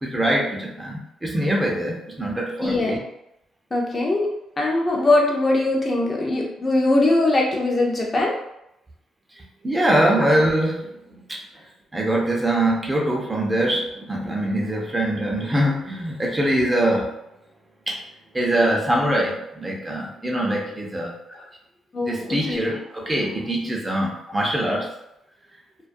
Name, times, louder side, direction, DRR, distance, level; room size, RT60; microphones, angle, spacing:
voice 1, 0.0-3.0 9.6-11.4 11.9-17.1 17.9-18.0 18.3-21.1 22.0-24.9, right 1 dB, 15° right, -1 dB, 0.6 m, -23 dB
voice 2, 2.6-3.0 3.7-4.3 4.6-8.4 10.2-10.3 21.3-21.4 21.9-22.7, left 2 dB, 30° left, -1 dB, 0.5 m, -21 dB
2.3 x 2.2 x 2.5 m, 0.81 s
cardioid pair, 90°, 0 cm